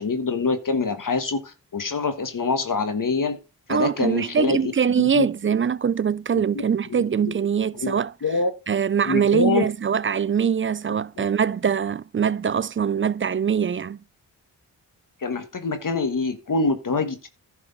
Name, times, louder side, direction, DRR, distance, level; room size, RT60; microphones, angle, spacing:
voice 1, 0.0-3.4 3.7-4.7 5.0-5.3 7.2-7.3 7.8-8.5 9.1-9.7 11.2-11.3 15.2-17.3, left 4 dB, 50° left, 1.4 m, -25 dB
voice 2, 3.7-8.1 8.7-14.0, right 7 dB, 30° right, 0.4 m, -23 dB
11.0 x 4.7 x 5.3 m
cardioid pair, 60°, 41 cm